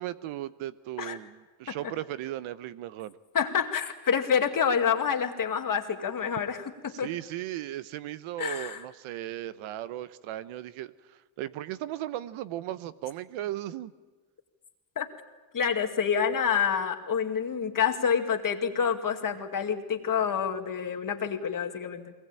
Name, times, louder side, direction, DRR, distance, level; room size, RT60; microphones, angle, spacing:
voice 1, 0.0-3.1 6.9-13.9, right 13 dB, 85° right, 15 dB, 1.0 m, -36 dB
voice 2, 3.3-7.1 8.4-8.8 15.0-15.1 15.5-22.1, left 7 dB, 40° left, 5 dB, 2.2 m, -28 dB
21.5 x 19.0 x 9.0 m, 1.2 s
cardioid pair, 90°, 48 cm